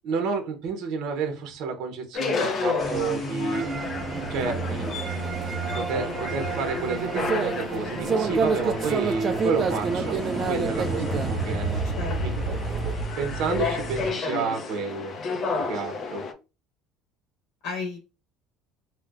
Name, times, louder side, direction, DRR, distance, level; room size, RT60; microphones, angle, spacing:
voice 1, 0.0-3.7 4.3-5.0 5.7-10.2 10.5-11.8 12.2-12.3 13.2-15.2 15.7-16.2, right 5 dB, 55° right, 4 dB, 0.8 m, -30 dB
sound 1, 2.1-16.3, left 4 dB, 30° left, 0.5 m, -33 dB
sound 2, 2.8-14.1, right 1 dB, 5° left, 0.8 m, -32 dB
sound 3, 3.5-13.0, right 5 dB, 30° right, 0.3 m, -30 dB
voice 2, 11.8-12.6 17.6-18.1, left 4 dB, 70° left, 2 dB, 0.9 m, -35 dB
4.2 x 2.1 x 2.4 m, 0.29 s
cardioid pair, 160°, 0 cm